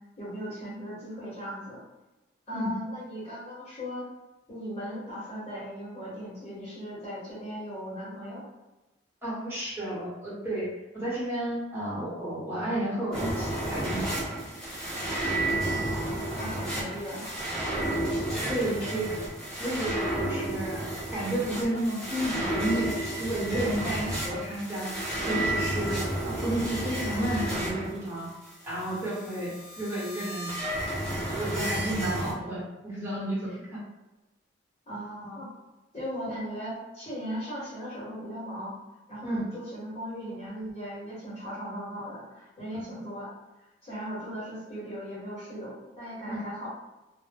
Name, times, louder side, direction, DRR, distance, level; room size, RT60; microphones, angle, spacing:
voice 1, 0.2-1.8 2.5-4.1 4.5-8.4 15.6-17.2 34.9-35.5 35.9-38.7 39.1-43.3 43.8-46.7, equal, 35° left, -9 dB, 1.0 m, -38 dB
voice 2, 9.2-10.7 10.9-14.3 18.5-19.2 19.6-22.9 23.2-24.9 25.3-28.3 28.6-30.6 31.0-33.8 39.2-39.4 46.3-46.4, right 1 dB, 15° right, -9 dB, 1.1 m, -32 dB
sound 1, 13.1-32.3, right 1 dB, 5° left, 0.8 m, -32 dB
2.1 x 2.0 x 3.3 m, 1.1 s
head